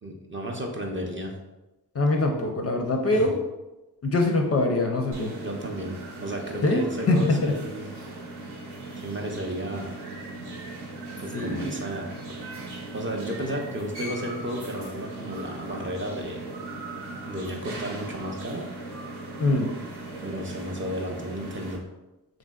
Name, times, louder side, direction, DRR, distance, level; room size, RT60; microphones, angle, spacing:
voice 1, 0.0-1.3 3.1-3.3 5.4-7.9 9.0-9.9 11.2-12.4 12.9-16.5 17.2-18.7 20.2-21.8, equal, 25° right, 1 dB, 0.5 m, -33 dB
voice 2, 1.9-3.3 4.0-5.3 6.6-6.8 7.1-7.5 11.3-11.8 19.4-19.7, left 2 dB, 35° left, 2 dB, 0.4 m, -23 dB
sound 1, 5.1-21.8, right 2 dB, 60° right, 0.8 m, -38 dB
3.0 x 2.6 x 2.3 m, 1.0 s
supercardioid pair, 40°, 45 cm